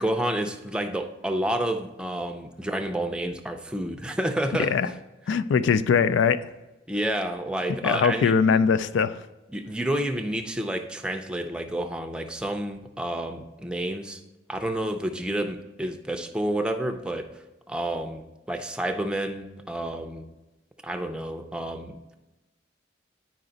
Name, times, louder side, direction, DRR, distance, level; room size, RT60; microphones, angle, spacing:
voice 1, 0.0-4.7 6.9-8.6 9.5-14.2 14.5-20.3 20.8-22.0, right 1 dB, 5° right, 5 dB, 0.4 m, -30 dB
voice 2, 5.3-6.5 7.8-9.2, left 6 dB, 85° left, 14 dB, 0.3 m, -21 dB
8.7 x 5.0 x 3.9 m, 1.0 s
head